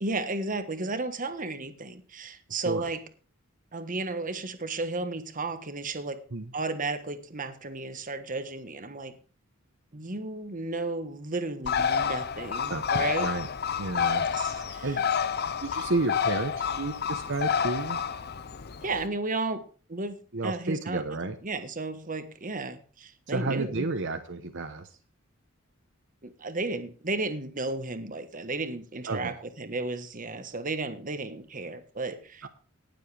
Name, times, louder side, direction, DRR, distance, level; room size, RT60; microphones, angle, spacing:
voice 1, 0.0-3.0 3.7-6.2 6.5-9.1 9.9-13.3 14.2-14.9 18.8-19.6 19.9-23.9 26.2-32.5, right 3 dB, 40° right, 9 dB, 1.4 m, -33 dB
Bird, 11.7-19.1, left 7 dB, 50° left, 0.7 m, -29 dB
voice 2, 12.7-13.5 13.8-14.2 14.5-15.0 15.6-18.0 20.3-21.4 23.3-24.9 29.1-29.4 32.4-32.5, right 3 dB, 60° right, 6 dB, 1.1 m, -31 dB
18.5 x 7.6 x 3.4 m, 0.39 s
head